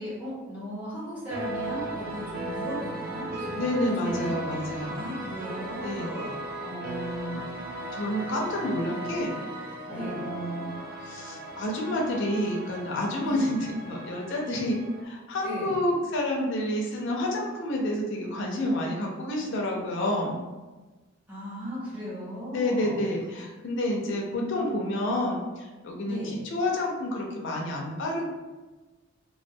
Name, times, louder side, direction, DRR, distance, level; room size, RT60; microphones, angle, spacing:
voice 1, 0.0-4.3 4.8-6.3 9.9-10.2 13.2-13.5 15.4-15.8 21.3-23.0 26.0-26.4, equal, 10° right, -10 dB, 0.8 m, -37 dB
sound 1, 1.3-15.0, right 1 dB, 45° right, 0.4 m, -37 dB
voice 2, 3.5-5.0 5.8-6.1 6.6-7.5 7.9-9.3 9.9-20.4 22.5-28.3, left 1 dB, 65° left, -1 dB, 0.5 m, -29 dB
2.2 x 2.1 x 2.6 m, 1.2 s
head